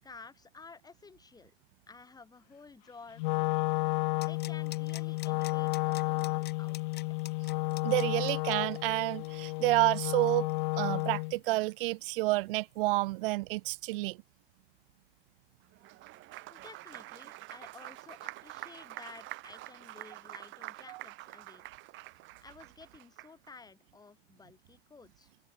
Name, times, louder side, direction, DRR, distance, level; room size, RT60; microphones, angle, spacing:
voice 1, 0.0-1.5 1.9-3.5 4.2-7.0 16.5-21.7 22.4-25.3, left 4 dB, 15° left, 7.2 m, -53 dB
Wind instrument woodwind instrument, 3.2-11.4, left 25 dB, 55° left, 0.5 m, -32 dB
sound 1, 4.2-11.7 12.0-12.1, left 13 dB, 35° left, 5.1 m, -49 dB
voice 2, 7.8-10.5 10.7-14.2 20.9-21.0, right 21 dB, 65° right, 0.9 m, -29 dB
Applause, 15.7-23.5, right 19 dB, 40° right, 1.8 m, -47 dB
supercardioid pair, 130°, 30 cm